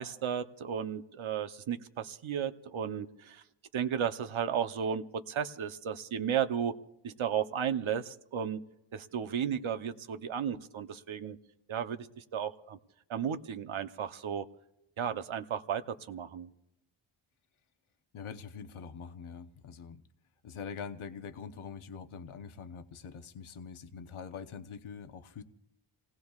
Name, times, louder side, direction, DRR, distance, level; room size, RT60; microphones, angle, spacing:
voice 1, 0.0-3.4 3.7-6.7 7.0-8.6 8.9-11.4 11.7-12.8 13.1-14.5 15.0-16.5, right 8 dB, 70° right, 9 dB, 0.9 m, -34 dB
voice 2, 18.1-20.0 20.4-25.4, left 6 dB, 75° left, 8 dB, 1.0 m, -44 dB
29.5 x 18.5 x 2.4 m, 0.87 s
wide cardioid pair, 85°, 49 cm